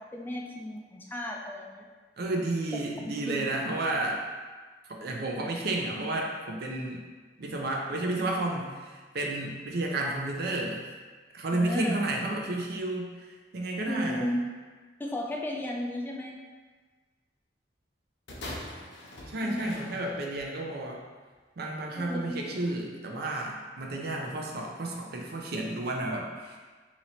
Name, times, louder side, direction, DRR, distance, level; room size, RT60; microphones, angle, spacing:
voice 1, 0.0-1.9 3.1-3.6 11.5-12.0 13.9-14.4 15.0-16.4 19.4-19.9 21.9-22.6, left 1 dB, 10° left, -1 dB, 0.3 m, -34 dB
voice 2, 2.2-4.2 4.9-7.0 7.4-10.9 11.3-14.3 19.3-21.0 21.6-26.6, right 2 dB, 60° right, 0 dB, 0.5 m, -32 dB
sound 1, 18.3-20.5 21.3-21.4, left 1 dB, 85° left, 0.8 m, -42 dB
2.9 x 2.9 x 4.1 m, 1.4 s
head